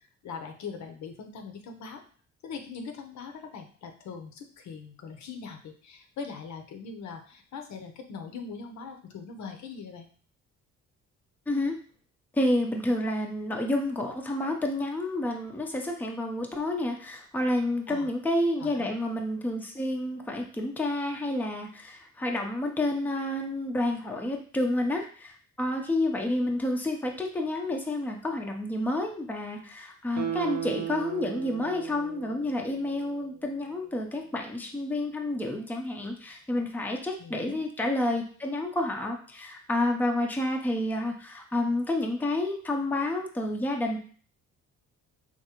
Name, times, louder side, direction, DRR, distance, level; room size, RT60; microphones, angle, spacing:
voice 1, 0.2-2.0 2.4-10.1 17.9-18.1 18.6-18.9 37.2-37.6, left 5 dB, 70° left, 5 dB, 0.7 m, -41 dB
voice 2, 11.5-11.8 12.3-44.0, left 1 dB, 5° left, 2 dB, 0.6 m, -29 dB
Guitar, 30.1-33.4 33.8-33.9, right 9 dB, 60° right, 0.5 m, -36 dB
3.7 x 2.6 x 2.9 m, 0.43 s
cardioid pair, 90°, 30 cm